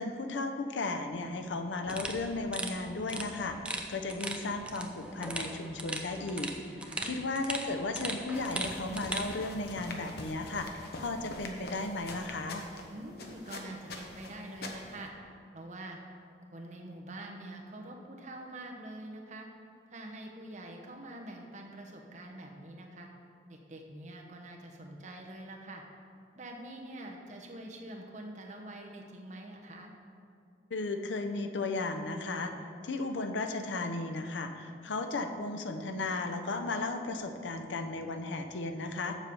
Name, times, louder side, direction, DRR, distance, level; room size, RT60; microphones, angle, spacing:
voice 1, 0.0-6.5 7.0-12.6 30.7-32.5 32.8-39.1, left 3 dB, 90° left, 6 dB, 0.6 m, -35 dB
sound 1, 1.9-9.3, right 2 dB, 5° right, 0.4 m, -39 dB
voice 2, 6.8-7.2 12.9-15.1 15.5-16.0 16.5-19.5 19.9-23.1 23.5-25.8 26.4-29.9, right 1 dB, 40° right, 1 dB, 0.9 m, -45 dB
sound 2, 8.3-15.1, left 2 dB, 60° left, 0.9 m, -44 dB
7.2 x 5.3 x 6.9 m, 2.4 s
head